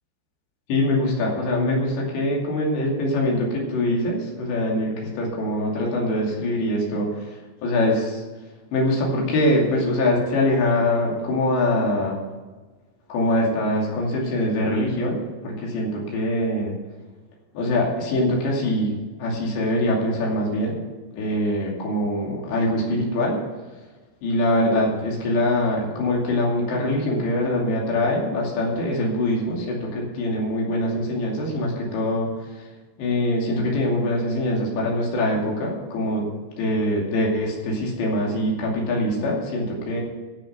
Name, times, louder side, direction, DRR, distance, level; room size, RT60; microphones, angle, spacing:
voice 1, 0.7-8.2 8.7-12.2 13.1-16.7 17.5-20.7 21.1-23.4 24.2-32.7 33.0-36.2 36.6-40.0, left 1 dB, 80° left, -2 dB, 4.8 m, -23 dB
12.0 x 7.0 x 8.0 m, 1.3 s
omnidirectional pair, 5.0 m